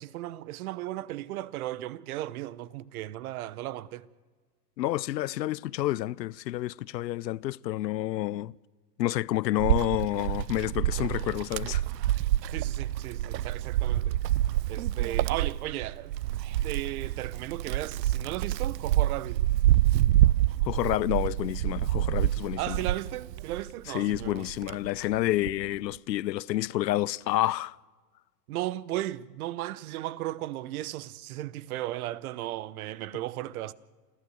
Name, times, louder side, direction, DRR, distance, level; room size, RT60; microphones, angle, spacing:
voice 1, 0.0-4.1 12.5-14.2 14.7-16.2 16.6-19.4 22.6-24.5 28.5-33.7, right 15 dB, 60° right, 1.0 m, -35 dB
voice 2, 4.8-8.5 9.0-11.8 20.6-22.8 23.9-27.8, left 15 dB, 85° left, 0.6 m, -29 dB
Wind, 9.6-23.7 24.1-25.6, right 14 dB, 85° right, 0.6 m, -27 dB
28.0 x 15.5 x 7.9 m
hypercardioid pair, 125°, 49 cm